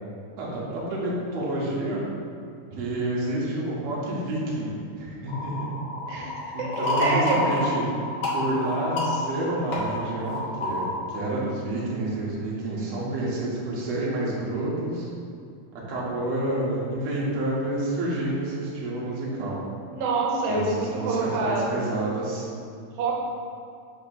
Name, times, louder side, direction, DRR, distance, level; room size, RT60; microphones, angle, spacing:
voice 1, 0.4-2.0 2.7-4.7 5.0-5.7 6.5-7.9 8.3-10.8 11.1-15.1 15.9-19.6 20.5-22.5, right 1 dB, 60° right, -6 dB, 2.3 m, -29 dB
sound 1, 5.3-11.0, left 2 dB, 90° left, 1.0 m, -29 dB
voice 2, 6.1-7.5 19.9-21.7 23.0-23.1, right 3 dB, 85° right, -2 dB, 2.3 m, -27 dB
6.3 x 2.9 x 5.7 m, 2.4 s
omnidirectional pair, 3.6 m